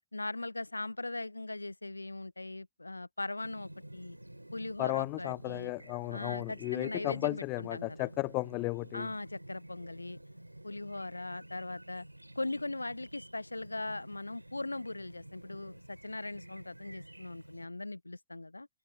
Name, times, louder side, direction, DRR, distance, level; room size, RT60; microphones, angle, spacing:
voice 1, 0.1-4.2 4.5-5.7 6.1-8.1 8.9-10.2 10.6-12.1 12.4-18.7, left 2 dB, 85° left, 0.7 m, -40 dB
Chirp tweet, 3.4-17.6, right 1 dB, 85° right, 3.1 m, -51 dB
voice 2, 4.8-9.1, left 25 dB, 40° left, 0.7 m, -34 dB
figure-of-eight pair, 90°, 0 cm